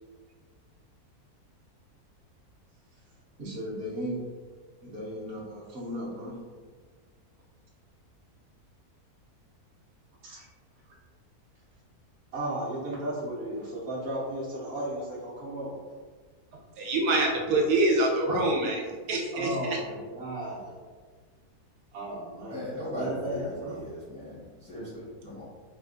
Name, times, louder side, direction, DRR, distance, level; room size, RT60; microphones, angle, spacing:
voice 1, 3.4-4.2 4.8-6.3 10.2-10.5 12.3-15.7 19.3-20.8 21.9-23.8, right 1 dB, 55° right, -7 dB, 0.9 m, -35 dB
voice 2, 16.8-19.8, right 2 dB, 90° right, 0 dB, 1.2 m, -25 dB
voice 3, 22.5-25.5, equal, 5° left, -8 dB, 0.5 m, -38 dB
3.3 x 2.3 x 2.5 m, 1.5 s
omnidirectional pair, 1.7 m